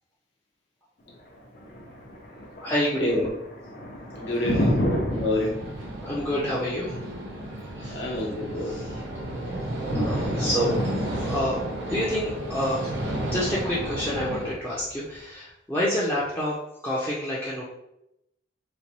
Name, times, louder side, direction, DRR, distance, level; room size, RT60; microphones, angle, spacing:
Thunder, 1.1-15.1, equal, 45° left, 0.7 m, -33 dB
voice 1, 2.6-3.2 4.3-4.6 6.0-7.0 7.8-8.2 8.6-9.3 9.9-13.0 13.3-16.6 16.8-17.6, equal, 10° left, -8 dB, 0.5 m, -29 dB
voice 2, 4.1-5.6 7.9-8.8, left 1 dB, 70° left, -3 dB, 0.9 m, -28 dB
sound 1, 5.1-14.5, right 1 dB, 75° right, 0.7 m, -32 dB
4.0 x 2.2 x 2.9 m, 0.83 s
head